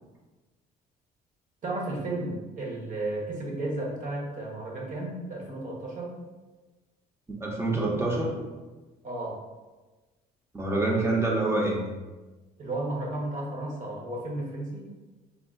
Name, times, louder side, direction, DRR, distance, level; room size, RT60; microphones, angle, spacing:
voice 1, 1.6-6.2 9.0-9.4 12.6-14.9, right 2 dB, 50° right, -2 dB, 0.9 m, -33 dB
voice 2, 7.4-8.3 10.5-11.8, right 2 dB, 15° right, -2 dB, 0.6 m, -26 dB
3.5 x 2.3 x 2.4 m, 1.2 s
cardioid pair, 110°, 17 cm